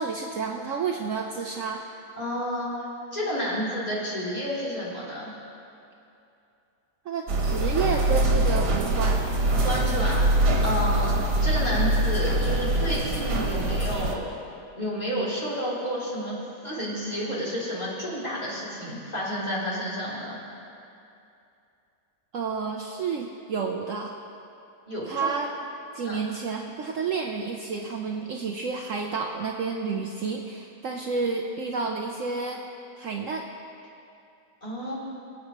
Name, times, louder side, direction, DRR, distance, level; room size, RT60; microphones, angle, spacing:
voice 1, 0.0-1.8 7.0-9.2 22.3-24.1 25.1-25.5 25.9-32.6 33.0-33.5, right 5 dB, 60° right, 1 dB, 1.0 m, -30 dB
voice 2, 2.2-2.9 3.1-5.4 9.6-14.3 14.8-20.4 24.9-25.3 26.0-26.2 34.6-34.9, equal, 25° left, -8 dB, 3.3 m, -30 dB
sound 1, 7.3-14.2, right 1 dB, 85° right, 1.9 m, -23 dB
24.5 x 8.4 x 3.0 m, 2.6 s
omnidirectional pair, 1.7 m